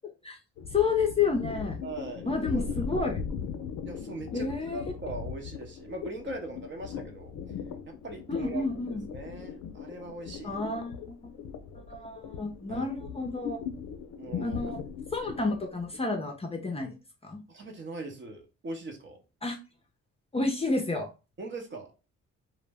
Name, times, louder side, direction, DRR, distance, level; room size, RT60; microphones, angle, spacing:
sound 1, 0.6-16.0, left 6 dB, 65° left, 0.5 m, -39 dB
voice 1, 0.7-1.8 2.3-3.2 4.3-4.8 8.3-9.0 10.4-11.2 11.9-13.6 14.4-14.8 15.1-16.9 17.2-17.4 19.4-19.6 20.3-21.1, left 4 dB, 20° left, 2 dB, 0.5 m, -30 dB
voice 2, 1.8-2.7 3.8-7.4 7.9-8.7 9.1-10.6 12.7-12.9 14.2-14.6 15.2-15.3 17.5-19.2 21.4-21.9, right 2 dB, 40° right, 4 dB, 0.7 m, -40 dB
2.1 x 2.0 x 3.3 m, 0.30 s
cardioid pair, 90°, 30 cm